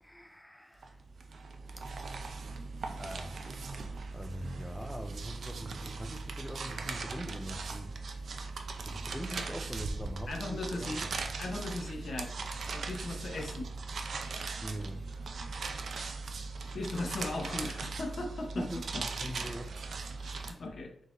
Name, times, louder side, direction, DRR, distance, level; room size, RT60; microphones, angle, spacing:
voice 1, 0.0-0.9 1.8-1.9 2.9-3.8 4.1-8.0 8.9-11.2 13.4-13.5 14.6-15.0 18.6-19.8 20.4-20.6, equal, 5° left, 0.3 m, -43 dB
sound 1, 0.8-20.5, right 4 dB, 70° right, 0.4 m, -39 dB
voice 2, 10.3-11.0 11.4-12.3 12.7-13.7 16.7-18.7 18.9-19.0 20.2-20.9, left 2 dB, 60° left, 0.7 m, -38 dB
3.9 x 3.9 x 2.5 m
wide cardioid pair, 90°, 0 cm